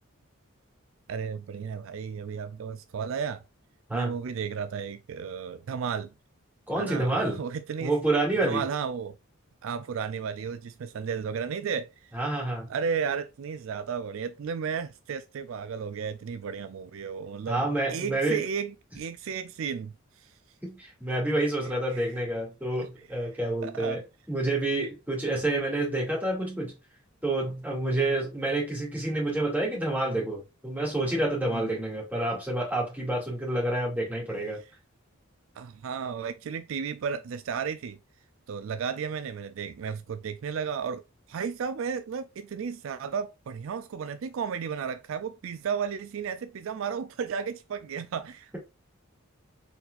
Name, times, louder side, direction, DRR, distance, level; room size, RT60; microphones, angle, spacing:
voice 1, 1.1-3.4 3.9-6.1 6.8-7.9 8.4-9.2 9.6-12.1 12.7-20.3 21.9-22.0 22.8-22.9 23.6-24.0 31.5-31.6 35.6-38.0 38.5-48.6, right 6 dB, 65° right, 0.4 m, -33 dB
voice 2, 6.7-7.4 7.8-8.6 12.1-12.7 17.5-18.4 20.6-26.7 27.2-34.6, right 2 dB, 10° right, 2.3 m, -28 dB
4.2 x 4.2 x 2.4 m
head